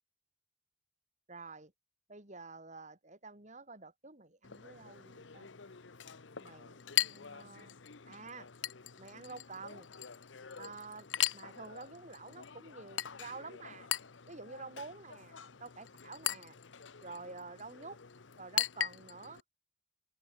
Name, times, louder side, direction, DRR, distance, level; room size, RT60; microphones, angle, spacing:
voice 1, 1.3-1.7 2.1-5.5 6.4-7.7 8.1-8.5 9.0-9.9 10.6-11.1 11.3-13.9 14.3-16.6 17.0-18.0 18.4-19.4, right 3 dB, 40° right, 4.3 m, -49 dB
Chink clink, 4.4-19.4, left 12 dB, 85° left, 1.0 m, -40 dB
open air
head